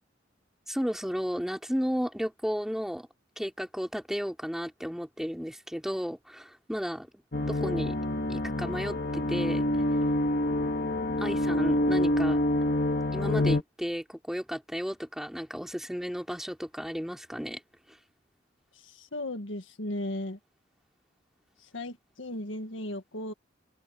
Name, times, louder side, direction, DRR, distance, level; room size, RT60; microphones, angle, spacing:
voice 1, 0.7-3.1 3.4-7.1 7.5-8.0 8.3-9.7 11.2-12.4 13.1-17.6, equal, ahead, 3.0 m, -33 dB
sound 1, 7.3-13.6, left 1 dB, 50° left, 2.1 m, -27 dB
voice 2, 18.7-20.4 21.6-23.3, left 1 dB, 75° left, 1.8 m, -36 dB
open air
head